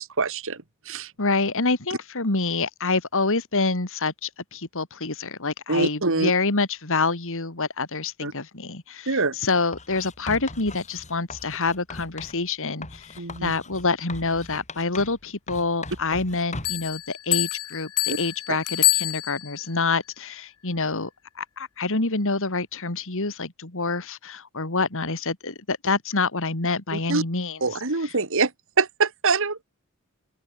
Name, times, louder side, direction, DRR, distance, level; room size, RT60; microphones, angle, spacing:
voice 1, 0.0-1.1 5.7-6.3 8.2-8.3 9.1-9.4 13.2-13.5 18.1-18.2 18.5-18.6 26.9-27.2 27.6-28.5 28.8-29.6, right 4 dB, 65° right, 2.2 m, -24 dB
voice 2, 1.2-9.1 9.4-13.0 13.4-17.9 18.2-21.1 21.4-27.6, left 3 dB, 65° left, 2.9 m, -26 dB
Writing, 9.7-12.4 12.8-15.2 15.5-16.9, left 3 dB, 30° left, 3.5 m, -39 dB
sound 1, 16.6-19.7, left 19 dB, 85° left, 0.9 m, -26 dB
open air
head